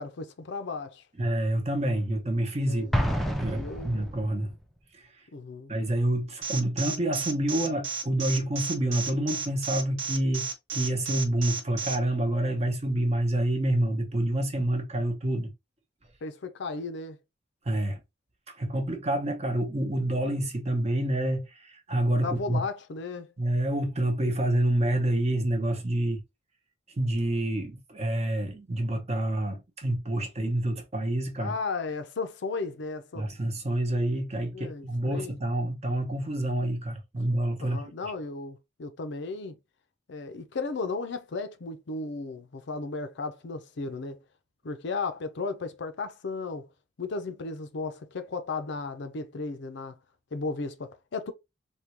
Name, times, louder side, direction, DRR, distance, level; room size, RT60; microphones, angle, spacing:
voice 1, 0.0-1.0 2.7-3.0 3.4-4.1 5.3-5.7 16.2-17.2 22.2-23.3 31.4-33.3 34.5-35.4 37.6-39.6 40.1-44.2 44.6-46.7 47.0-50.0 50.3-51.3, left 4 dB, 65° left, 0.5 m, -35 dB
voice 2, 1.2-4.5 5.7-15.5 17.6-18.0 18.6-22.6 23.4-26.2 27.0-31.5 33.1-37.9, right 1 dB, 35° right, 0.8 m, -28 dB
Explosion, 2.9-4.5, equal, ahead, 0.5 m, -29 dB
Alarm, 6.4-12.0, right 6 dB, 85° right, 0.9 m, -32 dB
3.6 x 2.3 x 2.9 m
head